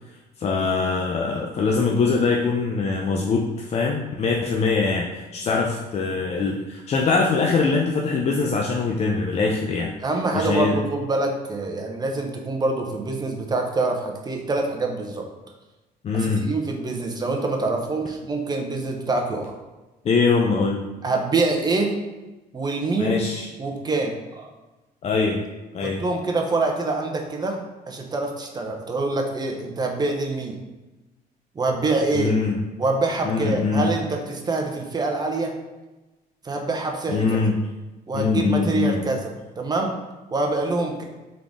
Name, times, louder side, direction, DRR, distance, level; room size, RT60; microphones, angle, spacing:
voice 1, 0.4-9.9 10.3-10.8 16.0-16.5 20.0-20.8 23.0-23.5 25.0-25.4 25.7-26.0 32.1-32.6 33.2-33.9 37.1-37.6 38.1-39.0, left 4 dB, 40° left, 1 dB, 0.4 m, -22 dB
voice 2, 10.0-15.3 16.1-19.5 21.0-22.0 22.5-23.2 23.6-24.5 25.8-30.6 31.5-32.4 32.8-35.5 36.4-37.4 38.1-39.3 39.6-39.9 40.3-41.0, right 3 dB, 25° right, 2 dB, 0.7 m, -25 dB
3.8 x 3.6 x 3.5 m, 1.1 s
cardioid pair, 110°, 17 cm